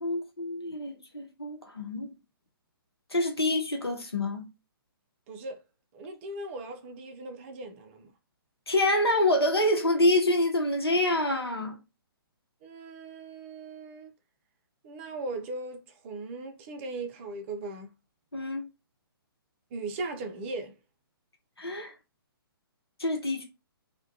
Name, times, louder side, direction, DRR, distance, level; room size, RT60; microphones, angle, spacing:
voice 1, 0.0-2.1 3.1-4.5 8.7-11.7 18.3-18.7 21.6-21.9 23.0-23.4, left 1 dB, 90° left, 0.8 m, -26 dB
voice 2, 5.3-5.6 5.9-8.1 12.6-14.1 14.8-17.9 19.7-20.7, right 2 dB, 30° right, 0.5 m, -38 dB
2.3 x 2.1 x 2.5 m
figure-of-eight pair, 130°, 13 cm